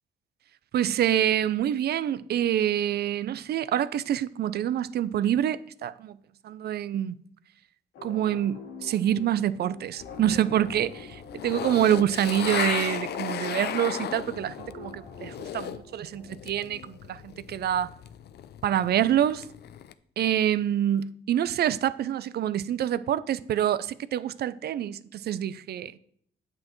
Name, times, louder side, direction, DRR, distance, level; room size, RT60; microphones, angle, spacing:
voice 1, 0.7-6.2 6.4-7.1 8.0-17.9 18.6-19.4 20.2-25.9, right 10 dB, 55° right, 0.4 m, -26 dB
sound 1, 7.9-17.4, left 3 dB, 85° left, 2.0 m, -45 dB
sound 2, 10.0-15.9 16.2-19.9, left 10 dB, 55° left, 0.5 m, -36 dB
8.5 x 7.4 x 3.1 m
cardioid pair, 90°, 20 cm